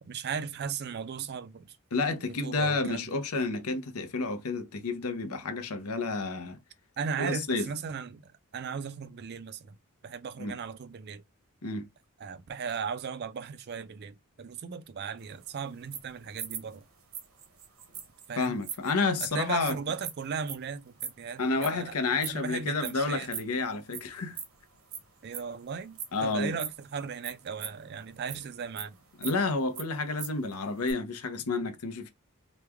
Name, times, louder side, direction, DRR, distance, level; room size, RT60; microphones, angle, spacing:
voice 1, 0.0-1.8 2.3-3.2 7.0-9.8 10.0-11.2 12.2-16.8 18.3-18.6 19.2-23.3 25.2-29.0, right 6 dB, 45° right, 0.4 m, -37 dB
voice 2, 1.9-6.6 7.2-7.7 10.4-10.6 11.6-11.9 18.4-19.8 21.4-24.4 26.1-26.6 29.2-32.1, left 3 dB, 85° left, 0.8 m, -30 dB
sound 1, 15.2-22.5 22.8-23.0 23.3-24.0 24.3-26.8 27.2-28.5 28.8-30.4 30.7-30.9, right 8 dB, 65° right, 0.8 m, -40 dB
3.1 x 2.2 x 3.4 m
head